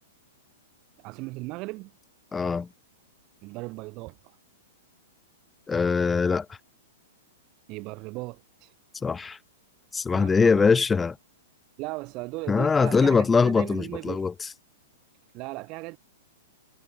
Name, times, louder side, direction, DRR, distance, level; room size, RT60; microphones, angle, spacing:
voice 1, 1.0-1.9 3.4-4.2 7.7-8.7 10.1-10.8 11.8-14.3 15.3-16.0, right 24 dB, 40° right, 3.1 m, -37 dB
voice 2, 2.3-2.7 5.7-6.5 9.0-9.4 9.9-11.2 12.5-14.3, left 5 dB, 15° left, 0.4 m, -22 dB
figure-of-eight pair, 105°, 0 cm